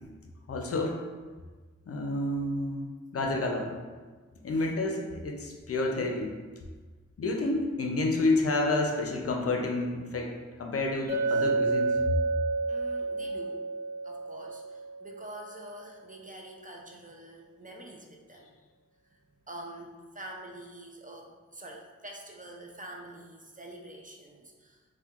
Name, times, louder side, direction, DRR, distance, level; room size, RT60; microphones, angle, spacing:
voice 1, 0.5-1.0 1.9-3.7 4.4-6.4 7.2-10.3 10.6-12.0, left 2 dB, 50° left, 1 dB, 0.5 m, -29 dB
Chink clink, 11.1-15.3, right 3 dB, 50° right, 1.0 m, -30 dB
voice 2, 12.7-13.7 14.0-18.5 19.1-19.2 19.5-24.8, right 1 dB, 25° right, 1 dB, 0.4 m, -46 dB
4.3 x 2.2 x 2.4 m, 1.4 s
cardioid pair, 55°, 30 cm